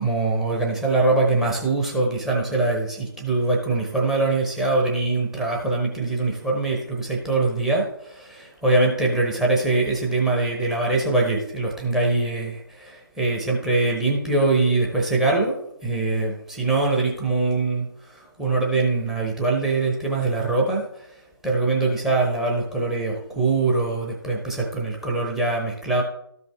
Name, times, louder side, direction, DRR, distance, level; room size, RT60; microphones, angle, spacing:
voice 1, 0.0-21.1 21.4-26.0, right 3 dB, 5° right, 0 dB, 0.8 m, -23 dB
13.0 x 5.3 x 3.3 m, 0.74 s
figure-of-eight pair, 150°, 13 cm